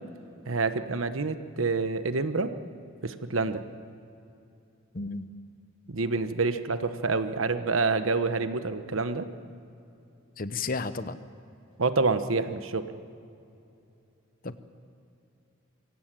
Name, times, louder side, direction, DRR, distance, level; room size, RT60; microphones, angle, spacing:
voice 1, 0.5-2.5 3.0-3.6 5.9-9.3 11.8-12.8, right 3 dB, 85° right, 10 dB, 1.1 m, -27 dB
voice 2, 4.9-5.3 10.4-11.2 14.4-14.6, left 3 dB, 45° left, 12 dB, 0.8 m, -32 dB
24.0 x 16.5 x 7.6 m, 2.7 s
head